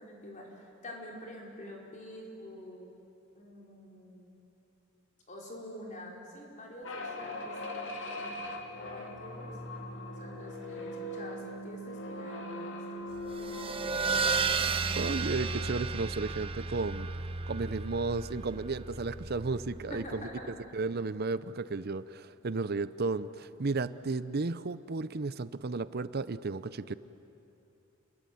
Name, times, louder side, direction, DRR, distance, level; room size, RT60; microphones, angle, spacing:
voice 1, 0.0-2.9 3.3-4.3 5.3-8.4 8.8-9.5 10.2-13.1 13.4-14.7 19.9-20.5, left 1 dB, 40° left, -1 dB, 5.3 m, -47 dB
sound 1, 6.8-15.6, left 1 dB, 65° left, 2.9 m, -41 dB
sound 2, 13.2-20.3, right 4 dB, 25° right, 1.0 m, -33 dB
voice 2, 15.0-17.1 17.5-20.3 20.7-26.9, right 3 dB, 50° right, 15 dB, 0.7 m, -33 dB
29.5 x 21.5 x 9.4 m, 2.9 s
head